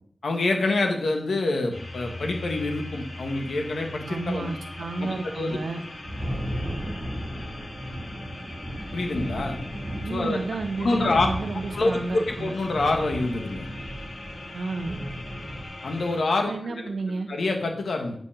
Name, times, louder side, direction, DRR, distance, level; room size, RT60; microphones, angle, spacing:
voice 1, 0.2-4.5 4.8-5.6 8.9-9.6 10.1-10.4 10.8-11.3 11.7-13.6 15.8-18.1, left 2 dB, 90° left, 3 dB, 1.5 m, -26 dB
sound 1, 1.7-16.2, left 2 dB, 60° left, 1.8 m, -41 dB
voice 2, 4.1-5.8 10.0-12.5 14.5-14.9 16.5-17.3, right 3 dB, 80° right, 6 dB, 1.0 m, -31 dB
Thunder, 5.5-15.7, equal, 25° right, 1.8 m, -35 dB
6.1 x 5.4 x 7.0 m, 0.62 s
wide cardioid pair, 110°, 0 cm